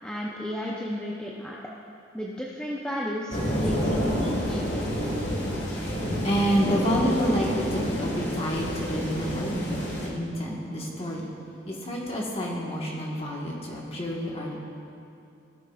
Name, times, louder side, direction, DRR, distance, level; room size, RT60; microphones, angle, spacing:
voice 1, 0.0-1.6 2.1-4.7, equal, 5° left, -4 dB, 0.5 m, -33 dB
sound 1, 3.3-10.1, equal, 65° left, 1.5 m, -28 dB
voice 2, 5.2-11.3 11.7-14.6, equal, 30° left, -3 dB, 1.2 m, -29 dB
17.0 x 6.7 x 2.3 m, 2.7 s
head